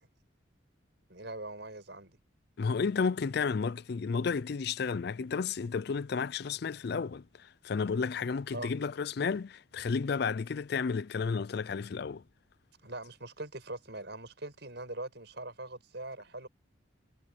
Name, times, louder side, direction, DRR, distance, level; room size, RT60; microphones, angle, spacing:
voice 1, 1.1-2.2 8.5-8.7 12.8-16.5, right 2 dB, 55° right, 6.5 m, -42 dB
voice 2, 2.6-12.2, left 5 dB, 50° left, 0.4 m, -32 dB
head